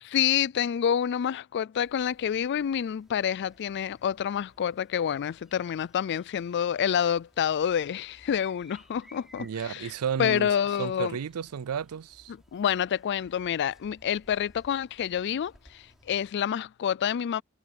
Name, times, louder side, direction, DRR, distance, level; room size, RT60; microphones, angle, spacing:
voice 1, 0.0-9.9 10.2-11.2 12.5-17.4, left 8 dB, 50° left, 0.3 m, -28 dB
sound 1, 1.8-16.3, equal, ahead, 3.6 m, -60 dB
voice 2, 9.4-10.5 10.8-12.3, right 7 dB, 85° right, 0.4 m, -32 dB
head